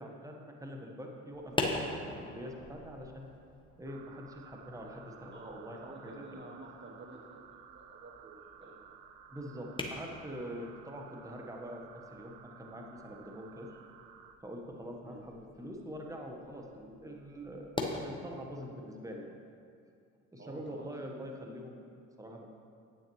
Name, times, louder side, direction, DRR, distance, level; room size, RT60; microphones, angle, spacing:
voice 1, 0.0-3.3 3.8-6.4 8.6-8.7 9.3-11.8 12.1-13.7 14.4-17.7 18.0-19.4 20.3-21.7 22.2-22.4, equal, 10° right, 1 dB, 1.2 m, -44 dB
sound 1, 1.3-18.0, left 2 dB, 10° left, 1.0 m, -44 dB
sound 2, 3.8-14.4, right 8 dB, 65° right, 0.6 m, -55 dB
voice 2, 5.3-9.0 15.0-15.2 20.4-21.1, right 2 dB, 30° right, -1 dB, 1.0 m, -50 dB
9.1 x 8.3 x 3.1 m, 2.3 s
hypercardioid pair, 60°, 38 cm